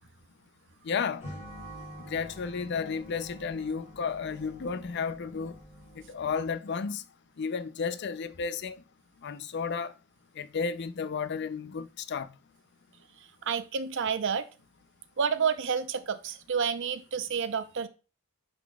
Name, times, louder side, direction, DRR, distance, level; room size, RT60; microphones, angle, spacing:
voice 1, 0.8-1.3 2.0-5.6 6.1-7.0 7.4-8.8 9.2-9.9 10.4-12.3, left 5 dB, 50° left, 0.4 m, -33 dB
sound 1, 1.2-6.3, equal, 35° left, 2.9 m, -47 dB
voice 2, 13.4-14.4 15.2-17.9, right 6 dB, 60° right, 0.6 m, -29 dB
10.5 x 3.9 x 2.2 m
head